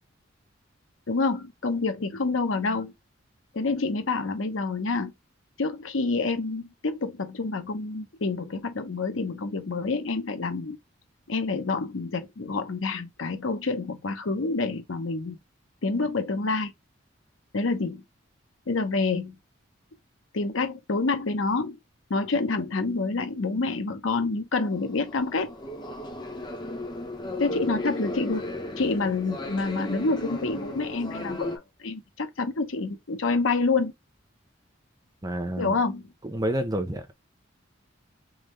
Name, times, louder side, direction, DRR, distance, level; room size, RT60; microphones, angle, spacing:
voice 1, 1.1-2.9 3.5-5.1 5.6-10.8 11.3-15.4 15.8-16.7 17.5-18.0 18.7-19.4 20.3-21.8 22.1-25.5 27.4-28.5 28.8-33.9 35.6-36.0, left 3 dB, 85° left, 0.9 m, -27 dB
sound 1, 24.7-31.6, left 1 dB, 20° left, 0.8 m, -35 dB
voice 2, 35.2-35.8 36.2-37.1, right 1 dB, 20° right, 0.6 m, -29 dB
3.6 x 3.2 x 3.2 m
head